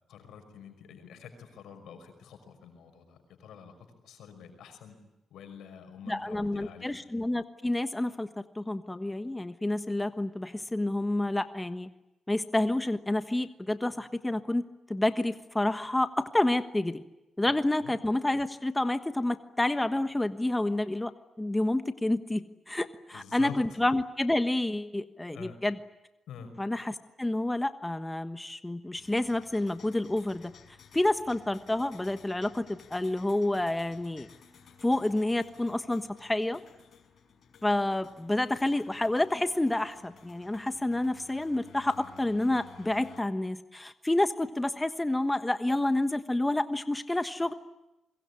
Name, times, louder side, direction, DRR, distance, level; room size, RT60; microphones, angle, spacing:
voice 1, 0.1-3.7 4.0-5.0 5.3-7.1 17.7-17.9 23.1-23.6 25.3-25.6 26.3-26.5, left 7 dB, 85° left, 7 dB, 5.7 m, -47 dB
voice 2, 6.1-8.3 8.5-11.9 12.3-17.0 17.4-21.1 21.4-25.7 26.6-30.5 30.9-34.3 34.8-36.6 37.6-47.5, left 1 dB, 15° left, 10 dB, 1.3 m, -29 dB
sound 1, 28.9-43.2, left 7 dB, 70° left, 5.5 m, -56 dB
25.0 x 23.0 x 9.8 m, 0.95 s
cardioid pair, 65°, 0 cm